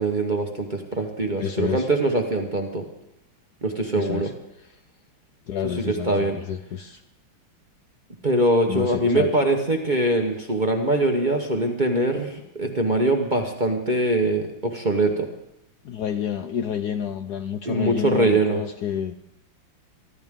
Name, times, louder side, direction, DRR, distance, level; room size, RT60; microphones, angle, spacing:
voice 1, 0.0-2.9 3.6-4.3 5.9-6.4 8.2-15.3 17.7-18.6, right 2 dB, 30° right, 3 dB, 1.0 m, -23 dB
voice 2, 1.4-1.9 4.0-4.3 4.6-4.7 5.5-7.0 8.7-9.3 15.8-19.2, left 8 dB, 65° left, 8 dB, 1.0 m, -29 dB
23.5 x 12.5 x 3.7 m, 0.81 s
omnidirectional pair, 2.2 m